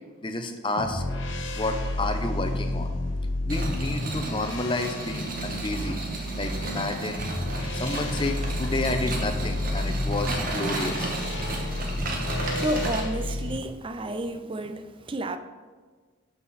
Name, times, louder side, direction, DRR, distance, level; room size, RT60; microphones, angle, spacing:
voice 1, 0.2-1.0 1.5-2.9 3.4-6.0 6.4-7.2 7.7-11.1, left 2 dB, 25° left, 0.7 m, -30 dB
sound 1, 0.8-13.6, left 1 dB, 65° left, 1.1 m, -31 dB
sound 2, 3.5-13.0, right 2 dB, 45° right, 1.3 m, -33 dB
voice 2, 12.6-15.4, right 1 dB, 25° right, 0.5 m, -31 dB
12.0 x 5.7 x 4.2 m
head